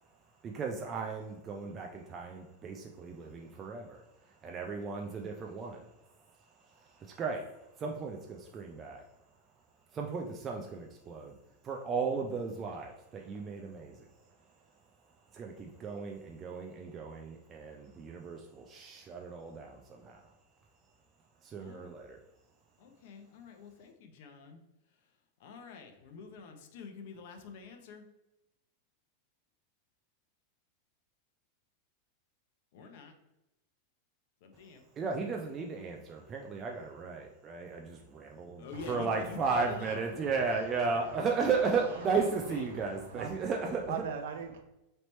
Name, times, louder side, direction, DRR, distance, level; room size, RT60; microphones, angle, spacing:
voice 1, 0.4-4.0 4.4-5.9 6.8-7.4 7.8-9.0 9.9-11.3 11.6-14.1 15.3-20.2 21.4-22.2 35.0-43.8, right 4 dB, 30° right, 0.4 m, -35 dB
voice 2, 21.6-22.0 22.8-24.6 25.4-28.0 32.7-33.1 34.4-34.8 38.6-40.0 41.9-42.7, left 5 dB, 65° left, 0.6 m, -47 dB
voice 3, 38.7-44.6, right 6 dB, 75° right, 0.6 m, -43 dB
3.2 x 2.9 x 4.1 m
supercardioid pair, 125°, 0 cm